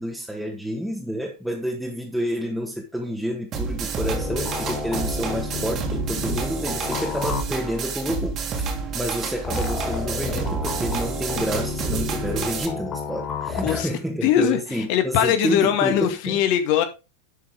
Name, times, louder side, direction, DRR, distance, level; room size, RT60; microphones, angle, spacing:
voice 1, 0.0-16.4, equal, ahead, 1.8 m, -29 dB
sound 1, 3.5-12.7, right 5 dB, 30° right, 2.3 m, -29 dB
sound 2, 4.0-7.8 9.4-13.8, left 4 dB, 25° left, 3.0 m, -31 dB
voice 2, 13.6-16.8, left 10 dB, 45° left, 2.0 m, -21 dB
11.5 x 6.3 x 3.8 m
figure-of-eight pair, 90°, 0 cm